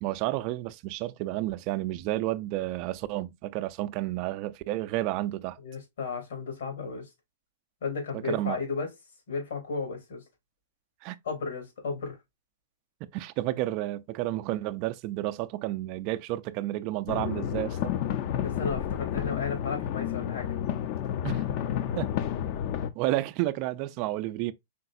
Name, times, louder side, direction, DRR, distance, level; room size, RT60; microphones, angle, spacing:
voice 1, 0.0-5.6 8.1-8.6 11.0-11.2 13.1-17.9 21.2-21.4 22.0-22.1 23.0-24.5, right 16 dB, 45° right, 0.5 m, -31 dB
voice 2, 5.6-7.1 7.8-8.9 9.3-10.2 11.3-12.2 18.4-20.5, left 5 dB, 75° left, 3.4 m, -34 dB
sound 1, 17.1-22.9, left 10 dB, 50° left, 0.7 m, -31 dB
5.1 x 3.8 x 2.6 m
hypercardioid pair, 120°, 0 cm